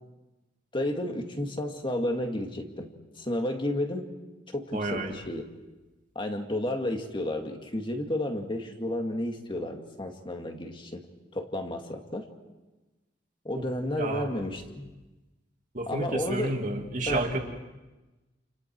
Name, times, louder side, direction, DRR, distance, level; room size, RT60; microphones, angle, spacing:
voice 1, 0.7-4.1 4.5-5.5 6.2-11.0 11.3-12.3 13.4-14.9 15.9-16.5 17.1-17.3, left 1 dB, 30° left, 3 dB, 2.3 m, -32 dB
voice 2, 4.7-5.2 14.0-14.3 15.7-17.4, right 2 dB, 45° right, 2 dB, 2.8 m, -30 dB
29.5 x 29.5 x 4.7 m, 1.1 s
head